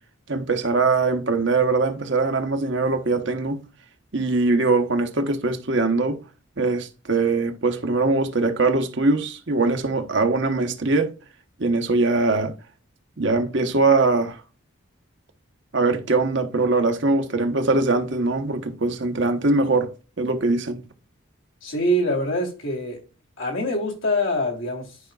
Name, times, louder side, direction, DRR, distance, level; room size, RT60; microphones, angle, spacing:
voice 1, 0.3-3.6 4.1-6.2 6.6-11.1 11.6-12.5 13.2-14.4 15.7-20.8, right 3 dB, 60° right, 1.0 m, -22 dB
voice 2, 21.6-23.0 23.4-25.0, equal, 70° left, 2.7 m, -24 dB
11.5 x 5.2 x 2.3 m
head